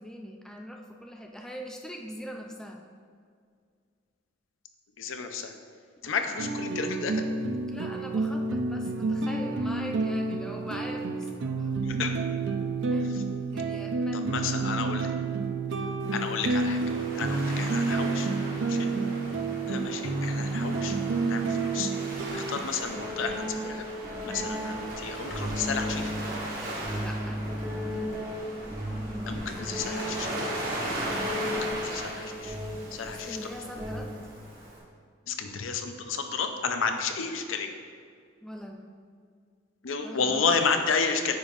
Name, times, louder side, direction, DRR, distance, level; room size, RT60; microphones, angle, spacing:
voice 1, 0.0-2.8 6.0-6.3 7.6-11.7 12.0-12.2 12.9-13.1 13.5-14.3 15.7-16.0 17.2-18.1 19.8-20.1 26.8-27.4 28.8-29.9 31.0-31.5 33.3-34.1 38.4-38.9 40.0-40.6, equal, 5° left, 1 dB, 0.4 m, -42 dB
voice 2, 5.0-5.5 6.0-7.2 11.8-12.1 13.1-13.2 14.1-15.1 16.1-16.8 17.1-18.3 18.6-18.9 19.7-21.0 21.2-21.9 22.3-23.8 24.2-26.1 29.3-30.5 31.7-32.6 32.9-33.4 35.3-37.7 39.8-41.4, left 5 dB, 85° left, 6 dB, 0.6 m, -31 dB
sound 1, 6.4-22.6, right 3 dB, 65° right, 0.4 m, -29 dB
Waves surf, 16.0-34.8, right 1 dB, 50° right, 1.3 m, -38 dB
sound 2, 18.6-18.7 20.3-20.4 22.1-22.3 22.8-34.4, equal, 20° right, 1.1 m, -35 dB
8.8 x 5.3 x 2.5 m, 2.1 s
head